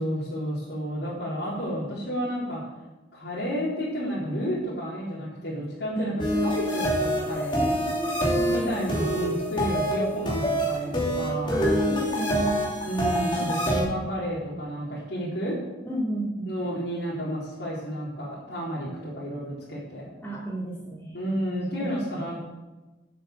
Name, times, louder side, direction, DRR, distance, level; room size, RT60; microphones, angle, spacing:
voice 1, 0.0-2.6 3.1-6.1 6.4-7.8 8.5-11.7 12.8-15.6 16.5-20.1 21.1-22.4, equal, 65° left, -10 dB, 4.1 m, -31 dB
sound 1, 6.2-13.8, equal, 25° left, 2.6 m, -26 dB
voice 2, 7.5-8.8 11.5-12.8 13.4-13.5 13.7-13.9 15.9-16.8 20.2-21.3 21.8-21.9, right 1 dB, 10° left, -10 dB, 3.4 m, -33 dB
8.7 x 7.9 x 7.9 m, 1.1 s
head